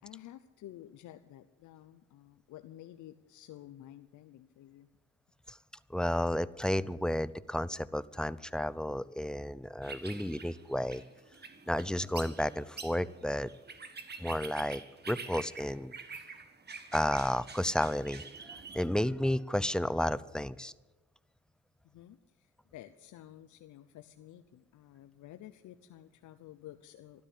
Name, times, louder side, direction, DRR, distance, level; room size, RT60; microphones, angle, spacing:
voice 1, 0.0-4.9 21.9-27.3, left 13 dB, 75° left, 9 dB, 0.8 m, -52 dB
voice 2, 5.9-11.0 11.7-13.5 14.2-15.9 16.9-20.7, left 1 dB, 5° left, 17 dB, 0.5 m, -32 dB
sound 1, 9.8-18.9, right 4 dB, 35° right, 1.8 m, -47 dB
13.5 x 12.0 x 8.4 m, 1.2 s
cardioid pair, 90°, 30 cm